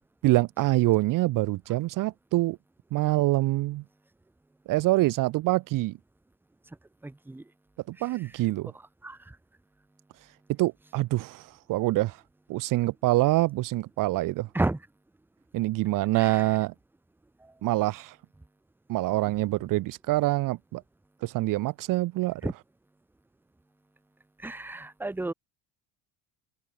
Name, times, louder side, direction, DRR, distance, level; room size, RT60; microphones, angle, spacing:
voice 1, 0.2-2.6 2.9-3.8 4.7-6.0 7.9-8.7 10.6-12.2 12.5-14.5 15.5-16.7 17.6-18.2 18.9-20.8 21.2-22.5, right 18 dB, 50° right, 1.9 m, -25 dB
voice 2, 7.0-7.4 9.0-9.4 14.5-14.8 16.1-16.4 17.4-17.5 22.4-22.5 24.4-25.3, right 2 dB, 5° right, 1.6 m, -32 dB
cardioid pair, 165°, 41 cm